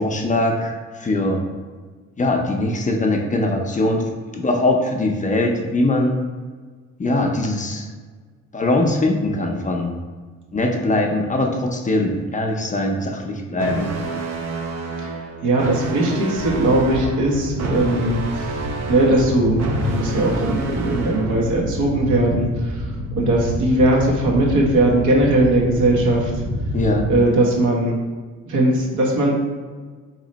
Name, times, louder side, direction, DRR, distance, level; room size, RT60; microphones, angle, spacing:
voice 1, 0.0-1.5 2.2-6.2 7.0-7.9 8.5-9.9 10.5-13.9 26.7-27.1, left 2 dB, 25° left, 1 dB, 0.5 m, -21 dB
sound 1, 13.6-21.6, right 3 dB, 60° right, 0.6 m, -29 dB
voice 2, 15.4-18.6 18.9-22.9 23.1-26.3 27.1-27.9 28.5-29.4, right 1 dB, 75° right, -3 dB, 1.0 m, -19 dB
sound 2, 16.3-27.2, equal, 35° right, 1.0 m, -28 dB
3.2 x 2.9 x 3.9 m, 1.5 s
cardioid pair, 90°, 30 cm